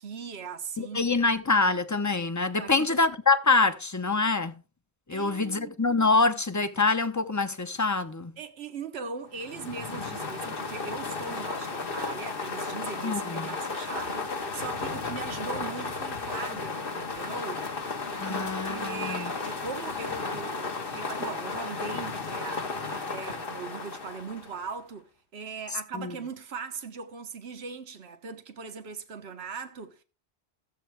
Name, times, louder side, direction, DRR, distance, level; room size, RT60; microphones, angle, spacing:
voice 1, 0.0-1.1 2.6-3.0 5.1-5.8 8.4-17.9 18.3-30.0, right 5 dB, 75° right, 1.4 m, -39 dB
voice 2, 0.8-4.5 5.1-8.3 13.0-13.5 18.2-19.3 25.9-26.1, left 3 dB, 20° left, 0.8 m, -25 dB
sound 1, 9.3-24.8, left 4 dB, 55° left, 1.5 m, -34 dB
16.0 x 7.5 x 3.4 m
omnidirectional pair, 1.1 m